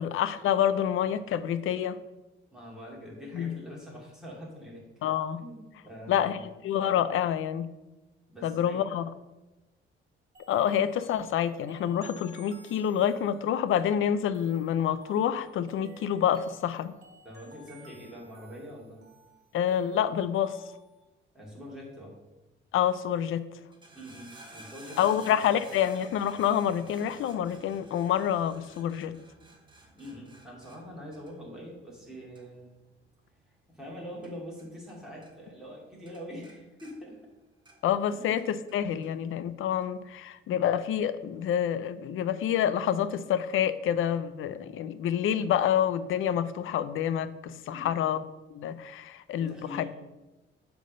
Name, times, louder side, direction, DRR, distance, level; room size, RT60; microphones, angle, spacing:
voice 1, 0.0-2.0 3.3-3.5 5.0-5.4 6.1-6.4 6.6-7.7 8.4-9.1 10.5-17.0 19.5-20.6 22.7-23.4 25.0-29.1 37.8-48.2 48.5-49.8, left 9 dB, 75° left, 14 dB, 0.5 m, -27 dB
voice 2, 2.5-4.8 5.4-6.5 8.3-8.8 17.2-19.0 21.3-22.1 23.9-25.3 29.9-32.7 33.7-37.2 38.1-38.2 47.6-48.0 49.4-49.9, equal, 5° right, -5 dB, 2.5 m, -44 dB
sound 1, 10.3-21.0, right 1 dB, 50° right, 1.6 m, -56 dB
sound 2, 23.6-35.0 35.2-35.8 36.1-38.0 38.4-39.1 39.8-39.9, right 2 dB, 20° right, 1.1 m, -53 dB
7.8 x 3.5 x 6.5 m, 1.0 s
cardioid pair, 130°, 21 cm